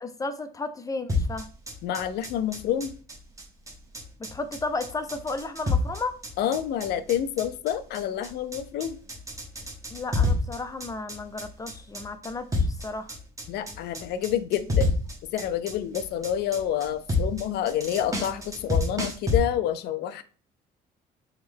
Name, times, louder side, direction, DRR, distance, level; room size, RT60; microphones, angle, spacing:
voice 1, 0.0-1.5 4.2-6.2 9.9-13.2, left 3 dB, 20° left, 9 dB, 0.5 m, -33 dB
sound 1, 1.1-19.4, left 3 dB, 20° right, 1.0 m, -29 dB
voice 2, 1.8-2.9 6.4-9.0 13.5-14.9 15.3-20.2, left 10 dB, 75° left, 13 dB, 0.5 m, -28 dB
3.5 x 3.1 x 3.5 m, 0.39 s
cardioid pair, 110°, 17 cm